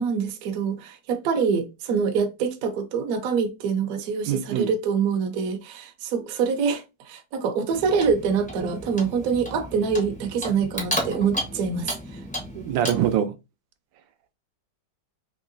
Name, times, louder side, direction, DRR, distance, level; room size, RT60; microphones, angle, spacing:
voice 1, 0.0-12.2, right 6 dB, 65° right, 1.0 m, -25 dB
voice 2, 4.3-4.7 12.5-13.3, right 10 dB, 90° right, 1.3 m, -24 dB
Clock, 7.7-13.2, equal, 15° left, 0.3 m, -33 dB
3.6 x 2.9 x 2.5 m
omnidirectional pair, 2.0 m